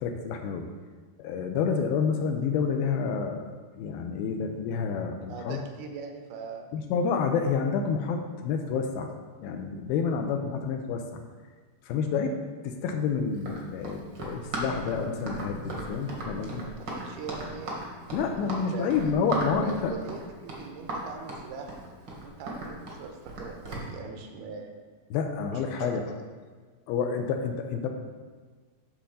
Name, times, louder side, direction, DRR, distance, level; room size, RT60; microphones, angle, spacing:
voice 1, 0.0-0.7 1.2-3.5 3.8-5.6 6.7-9.1 9.4-11.2 11.8-16.6 18.1-19.9 25.1-26.0 26.9-27.9, left 6 dB, 80° left, 4 dB, 2.4 m, -29 dB
voice 2, 5.3-6.7 16.4-18.4 18.7-18.9 19.6-21.8 22.2-24.7 25.5-26.0, right 5 dB, 85° right, 3 dB, 2.7 m, -41 dB
Run, 13.4-23.9, right 1 dB, 60° right, 1.1 m, -36 dB
10.0 x 3.8 x 6.9 m, 1.4 s
omnidirectional pair, 4.5 m